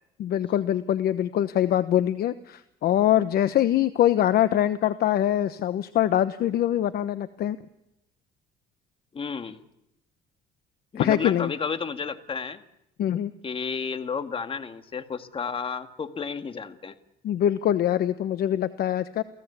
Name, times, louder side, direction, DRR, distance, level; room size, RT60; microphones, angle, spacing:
voice 1, 0.2-7.6 10.9-11.5 13.0-13.3 17.2-19.2, left 11 dB, 65° left, 13 dB, 1.1 m, -23 dB
voice 2, 9.1-9.6 10.9-12.6 13.4-16.9, left 5 dB, 30° left, 9 dB, 2.0 m, -32 dB
29.0 x 17.0 x 8.3 m, 0.86 s
cardioid pair, 110°, 17 cm